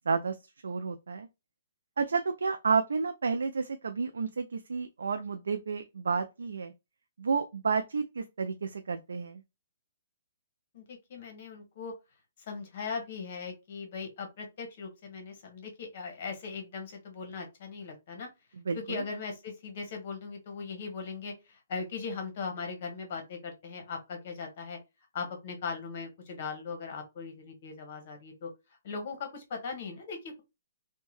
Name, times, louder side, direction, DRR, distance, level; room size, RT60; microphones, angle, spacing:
voice 1, 0.6-1.3 2.0-6.7 7.2-9.4 18.7-19.0, right 5 dB, 85° right, 0.3 m, -31 dB
voice 2, 10.7-11.9 12.5-18.3 18.7-24.8 25.1-28.5 28.8-30.4, left 5 dB, 50° left, 1.0 m, -39 dB
2.7 x 2.1 x 3.0 m
hypercardioid pair, 155°, 0 cm